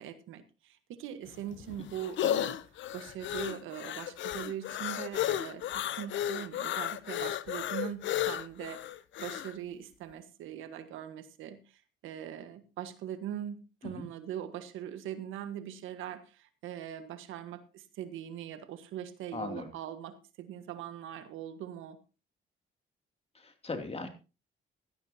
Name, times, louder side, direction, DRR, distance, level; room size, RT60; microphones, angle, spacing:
voice 1, 0.0-2.6 2.9-22.0, right 10 dB, 90° right, 10 dB, 1.5 m, -41 dB
sound 1, 1.3-9.5, left 11 dB, 70° left, 0.8 m, -34 dB
voice 2, 19.3-19.7 23.3-24.1, left 3 dB, 30° left, 5 dB, 2.9 m, -38 dB
16.5 x 12.5 x 2.9 m, 0.32 s
cardioid pair, 90°, 20 cm